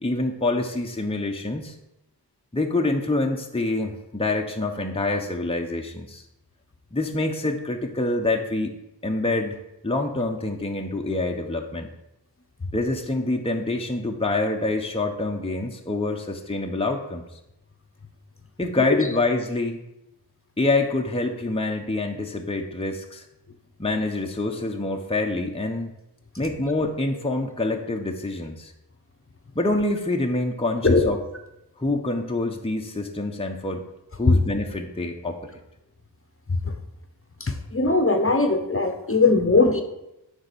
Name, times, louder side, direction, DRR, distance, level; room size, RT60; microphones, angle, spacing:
voice 1, 0.0-1.8 2.5-6.2 6.9-8.7 9.0-11.9 12.7-17.2 18.6-19.8 20.6-23.2 23.8-25.9 26.4-28.7 29.5-31.2 31.8-33.8 34.2-35.6, left 2 dB, 15° left, 2 dB, 0.9 m, -26 dB
voice 2, 37.4-39.8, left 3 dB, 30° left, 6 dB, 1.0 m, -20 dB
9.5 x 3.6 x 6.9 m, 0.89 s
wide cardioid pair, 45°, 41 cm